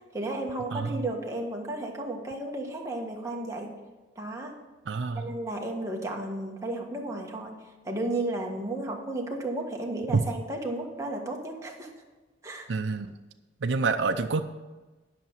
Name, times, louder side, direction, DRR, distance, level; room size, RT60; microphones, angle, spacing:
voice 1, 0.1-3.7 4.1-4.5 5.1-7.5 7.8-11.9 12.4-12.7, right 2 dB, 15° right, 0 dB, 1.5 m, -33 dB
voice 2, 0.7-1.0 4.9-5.3 10.1-10.2 12.7-13.1 13.6-14.4, right 4 dB, 75° right, 6 dB, 0.5 m, -27 dB
11.0 x 5.8 x 7.3 m, 1.2 s
head